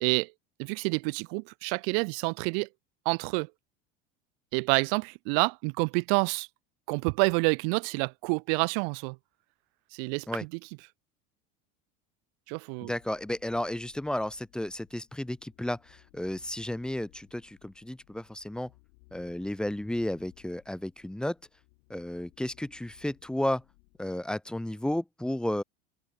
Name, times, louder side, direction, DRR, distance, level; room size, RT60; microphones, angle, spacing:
voice 1, 0.0-0.3 0.6-2.7 3.1-3.5 4.5-6.5 6.9-9.2 9.9-10.5 12.5-12.9, right 40 dB or more, 65° right, 0.5 m, -28 dB
voice 2, 12.8-18.7 19.1-21.4 21.9-23.6 24.0-25.6, left 1 dB, 5° left, 0.5 m, -33 dB
sound 1, 12.9-24.7, left 35 dB, 70° left, 6.8 m, -62 dB
supercardioid pair, 115°, 31 cm